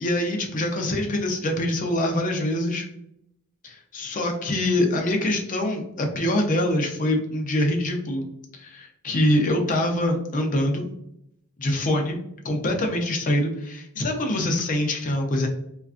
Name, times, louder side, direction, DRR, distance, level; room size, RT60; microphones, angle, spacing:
voice 1, 0.0-2.9 3.6-8.2 8.6-10.8 11.6-12.2 12.4-15.5, left 1 dB, 35° left, 3 dB, 0.4 m, -24 dB
2.4 x 2.2 x 2.4 m, 0.76 s
head